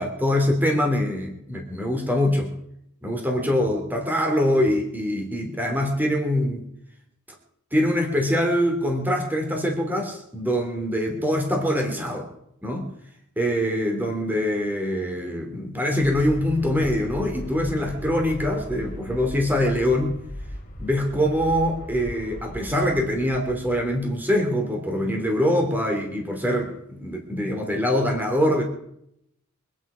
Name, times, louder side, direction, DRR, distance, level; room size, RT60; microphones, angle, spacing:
voice 1, 0.0-2.5 3.0-6.6 7.7-12.3 12.6-12.9 13.4-20.1 20.8-28.6, equal, 10° right, 2 dB, 2.9 m, -24 dB
Aircraft, 16.0-24.4, left 1 dB, 45° left, 2.7 m, -38 dB
25.0 x 10.0 x 5.0 m, 0.74 s
head